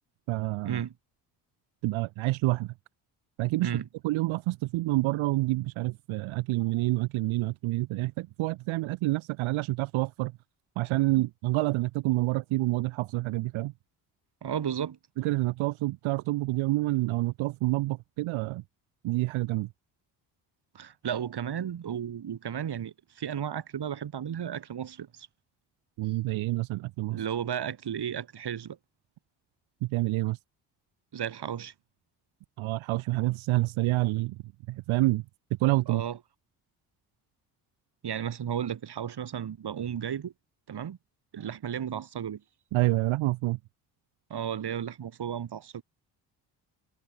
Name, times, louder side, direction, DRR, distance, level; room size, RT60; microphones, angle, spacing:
voice 1, 0.3-0.8 1.8-2.7 3.4-3.7 4.0-10.3 10.7-13.7 15.2-18.6 19.0-19.7 26.0-27.3 29.8-30.4 32.6-34.4 34.7-35.2 35.6-36.0 42.7-43.6, right 19 dB, 80° right, 6.7 m, -28 dB
voice 2, 14.4-15.0 20.7-25.3 27.1-28.8 31.1-31.7 35.9-36.2 38.0-40.3 40.7-41.0 41.3-42.4 44.3-45.8, right 9 dB, 55° right, 6.2 m, -34 dB
supercardioid pair, 60°, 47 cm